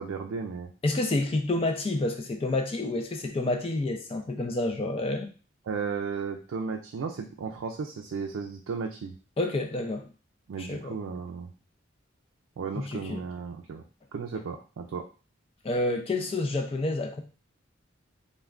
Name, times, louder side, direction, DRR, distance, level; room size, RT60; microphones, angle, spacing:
voice 1, 0.0-0.7 5.7-9.1 10.5-11.5 12.6-13.8 14.1-15.0, right 5 dB, 90° right, 2 dB, 0.4 m, -34 dB
voice 2, 0.8-5.3 9.4-10.1 10.6-10.9 12.7-13.2 15.6-17.2, left 2 dB, 30° left, 4 dB, 0.4 m, -29 dB
3.3 x 2.2 x 2.4 m, 0.36 s
head